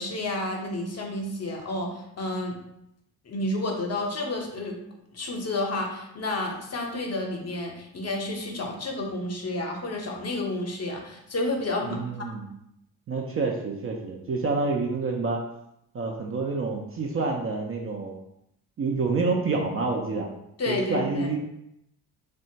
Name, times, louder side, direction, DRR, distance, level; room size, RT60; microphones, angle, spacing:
voice 1, 0.0-2.6 3.2-4.8 5.1-12.3 20.6-21.3, left 2 dB, 35° left, 1 dB, 0.7 m, -30 dB
voice 2, 11.8-12.6 13.1-15.4 15.9-18.2 18.8-20.3 20.7-21.4, right 3 dB, 30° right, 0 dB, 0.4 m, -28 dB
2.7 x 2.2 x 2.7 m, 0.79 s
hypercardioid pair, 45°, 44 cm